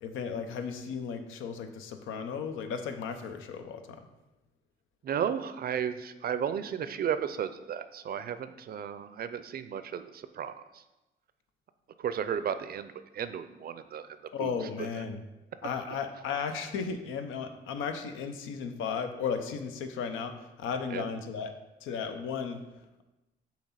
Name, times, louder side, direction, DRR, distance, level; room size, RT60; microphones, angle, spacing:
voice 1, 0.0-4.0 14.3-15.2 15.6-21.5 21.8-22.6, left 6 dB, 85° left, 7 dB, 0.7 m, -35 dB
voice 2, 5.0-10.8 12.0-14.1 14.4-14.6 20.9-21.1, right 8 dB, 50° right, 11 dB, 0.5 m, -34 dB
7.3 x 2.9 x 5.7 m, 1.0 s
cardioid pair, 90°, 20 cm